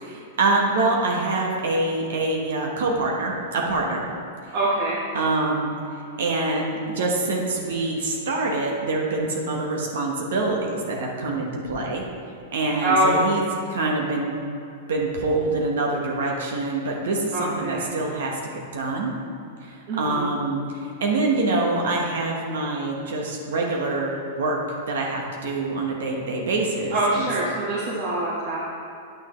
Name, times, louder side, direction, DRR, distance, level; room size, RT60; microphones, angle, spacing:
voice 1, 0.0-4.0 4.4-4.5 5.1-12.0 12.5-13.4 13.7-14.4 14.9-19.1 19.6-24.6 24.9-27.3, right 2 dB, 80° right, -1 dB, 1.3 m, -25 dB
voice 2, 4.5-5.0 12.8-13.2 17.3-17.8 19.9-20.3 26.9-28.6, right 1 dB, 55° right, -8 dB, 1.6 m, -24 dB
9.5 x 6.4 x 3.2 m, 2.6 s
hypercardioid pair, 140°, 0 cm